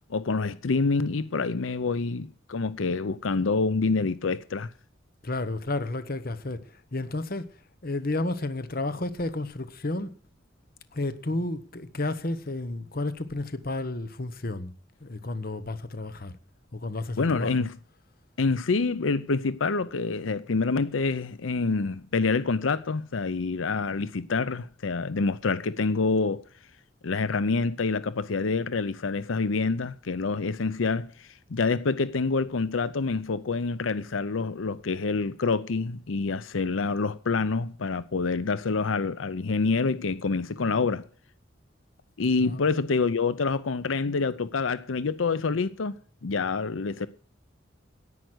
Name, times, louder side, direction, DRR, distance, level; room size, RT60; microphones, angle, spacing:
voice 1, 0.1-4.7 17.2-17.8 18.4-26.4 27.0-41.0 42.2-47.1, left 4 dB, 90° left, 0.6 m, -27 dB
voice 2, 5.2-6.6 6.9-7.5 7.8-10.1 10.9-14.7 15.0-16.3 16.7-17.5 42.4-42.6, left 2 dB, 50° left, 1.1 m, -31 dB
11.0 x 9.3 x 7.9 m
head